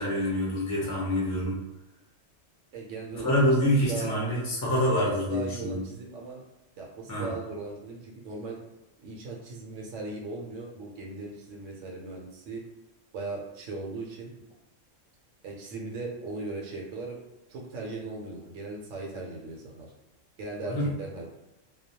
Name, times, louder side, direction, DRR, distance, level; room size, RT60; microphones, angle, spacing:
voice 1, 0.0-1.6 3.2-5.8 7.1-7.3 20.6-20.9, equal, 25° left, -5 dB, 0.4 m, -26 dB
voice 2, 2.7-4.1 4.7-6.4 6.8-8.6 9.0-12.6 13.1-14.3 15.4-17.2 17.5-19.9 20.4-21.2, right 3 dB, 75° right, -1 dB, 0.9 m, -38 dB
2.2 x 2.1 x 2.8 m, 0.96 s
omnidirectional pair, 1.3 m